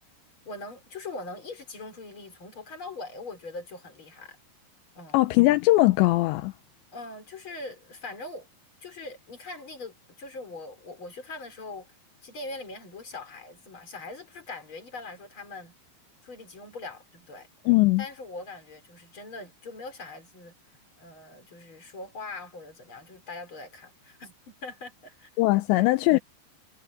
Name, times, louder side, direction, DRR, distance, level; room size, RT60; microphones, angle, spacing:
voice 1, 0.4-4.4 4.9-5.3 6.9-8.5 8.8-12.0 12.2-15.7 16.2-17.5 18.0-20.5 21.0-25.3 25.7-25.9, left 3 dB, 25° left, 5.0 m, -41 dB
voice 2, 5.1-6.5 17.7-18.0 25.4-26.2, left 19 dB, 85° left, 2.8 m, -20 dB
omnidirectional pair, 5.3 m